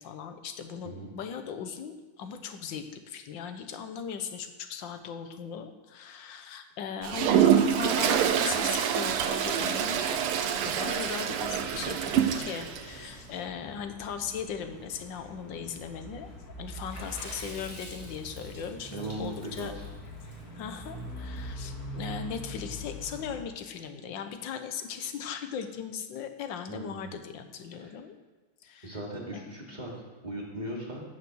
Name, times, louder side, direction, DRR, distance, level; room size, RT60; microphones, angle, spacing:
voice 1, 0.0-16.3 16.6-19.7 20.5-28.1 28.6-29.0 29.3-29.8, left 7 dB, 65° left, 8 dB, 1.6 m, -38 dB
Toilet flush, 7.0-12.8, right 9 dB, 90° right, 1.7 m, -26 dB
sound 1, 11.2-23.4, equal, 45° left, 2.4 m, -43 dB
Water / Splash splatter, 16.9-21.4, left 1 dB, 15° left, 2.6 m, -47 dB
voice 2, 18.9-19.9 26.7-27.1 27.8-27.9 28.8-29.9 30.2-31.0, right 1 dB, 20° right, -3 dB, 2.7 m, -38 dB
15.5 x 6.4 x 6.3 m, 1.3 s
omnidirectional pair, 2.4 m